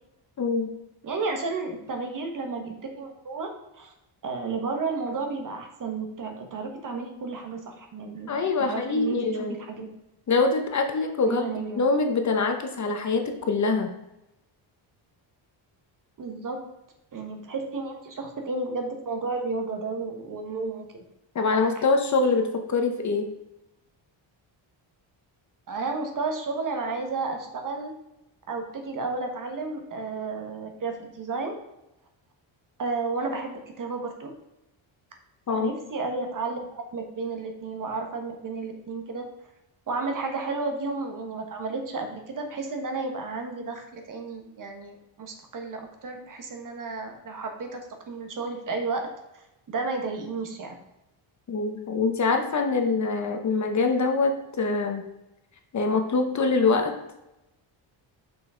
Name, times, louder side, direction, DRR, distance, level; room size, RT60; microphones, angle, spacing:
voice 1, 0.4-0.7 8.3-9.6 10.3-11.5 11.8-13.9 21.3-23.3 35.5-35.7 51.5-55.0 55.7-57.0, left 4 dB, 35° left, 5 dB, 0.8 m, -24 dB
voice 2, 1.0-3.5 3.8-3.9 4.2-8.3 8.6-9.9 11.2-11.8 16.2-16.6 17.1-20.9 25.7-27.9 28.5-31.6 32.8-34.3 35.5-39.2 39.9-47.8 48.1-49.1 49.7-50.7, right 3 dB, 40° right, 4 dB, 1.4 m, -32 dB
6.3 x 5.8 x 4.9 m, 0.91 s
cardioid pair, 165°, 48 cm